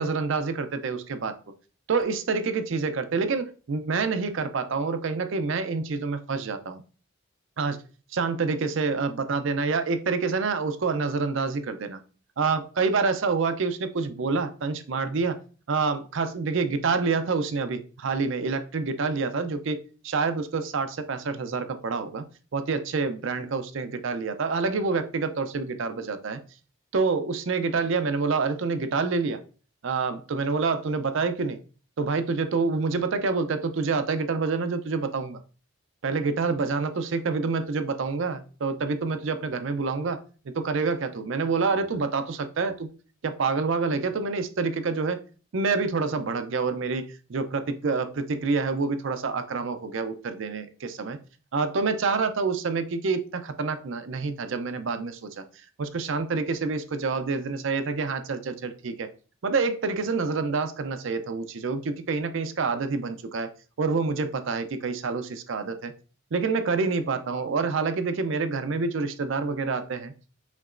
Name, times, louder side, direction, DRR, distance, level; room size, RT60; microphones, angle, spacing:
voice 1, 0.0-1.3 1.9-6.8 7.6-7.8 8.1-12.0 12.4-15.4 15.7-19.8 20.0-22.2 22.5-26.4 26.9-29.4 29.8-31.6 32.0-35.4 36.0-40.2 40.5-42.9 43.2-45.2 45.5-47.0 47.3-51.2 51.5-55.4 55.8-59.1 59.4-63.5 63.8-65.9 66.3-70.1, right 4 dB, 60° right, 9 dB, 0.5 m, -27 dB
5.2 x 2.9 x 2.4 m, 0.38 s
head